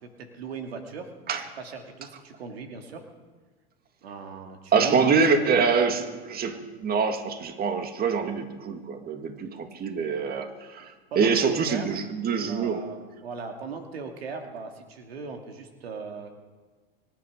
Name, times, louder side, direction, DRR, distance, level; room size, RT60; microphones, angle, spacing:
voice 1, 0.0-1.1 1.6-3.1 4.0-5.4 11.1-11.9 12.5-16.3, right 5 dB, 85° right, 4 dB, 2.4 m, -38 dB
voice 2, 4.7-12.8, right 5 dB, 30° right, 6 dB, 2.0 m, -25 dB
24.5 x 10.5 x 5.0 m, 1.4 s
hypercardioid pair, 100°, 30 cm